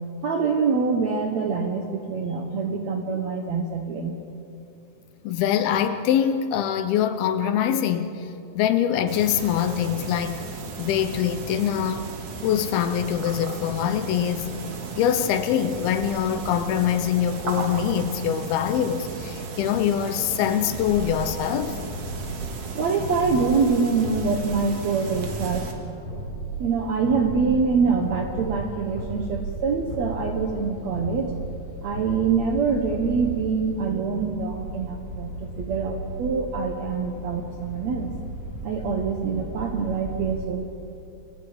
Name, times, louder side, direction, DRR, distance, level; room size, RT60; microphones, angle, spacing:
voice 1, 0.2-4.1 22.7-26.0 26.6-31.3 31.8-38.1 38.6-40.6, right 5 dB, 70° right, 1.7 m, -25 dB
voice 2, 5.2-8.3 8.6-10.4 10.8-12.1 12.4-14.5 15.0-21.8, left 9 dB, 75° left, 2.5 m, -24 dB
sound 1, 9.1-25.7, right 3 dB, 50° right, 2.3 m, -35 dB
sound 2, 20.7-33.8, right 2 dB, 35° left, 6.2 m, -36 dB
sound 3, 26.8-40.5, right 1 dB, 30° right, 2.1 m, -38 dB
28.5 x 23.0 x 5.0 m
omnidirectional pair, 4.8 m